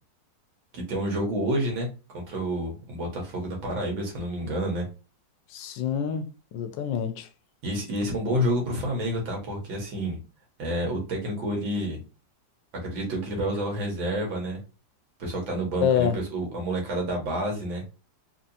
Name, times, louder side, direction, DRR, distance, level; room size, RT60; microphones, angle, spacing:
voice 1, 0.7-1.9 2.1-4.9 7.6-10.2 10.6-12.0 12.8-14.6 15.2-17.8, right 1 dB, 80° right, 2.2 m, -29 dB
voice 2, 5.5-7.3 15.8-16.2, left 8 dB, 80° left, 1.3 m, -27 dB
4.3 x 3.0 x 2.7 m
omnidirectional pair, 2.1 m